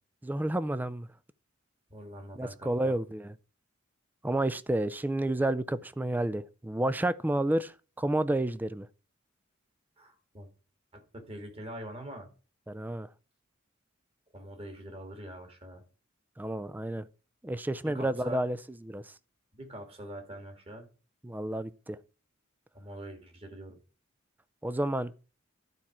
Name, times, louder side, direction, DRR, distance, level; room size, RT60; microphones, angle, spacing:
voice 1, 0.2-1.1 2.3-3.3 4.2-8.9 12.7-13.1 16.4-17.0 17.4-18.6 18.8-19.0 21.2-22.0 24.6-25.1, right 1 dB, 10° right, 0.4 m, -30 dB
voice 2, 1.9-2.9 10.0-10.5 10.9-12.3 14.3-15.8 17.8-18.4 19.5-20.9 22.7-23.8, right 1 dB, 30° right, 2.2 m, -44 dB
12.0 x 4.4 x 6.0 m
head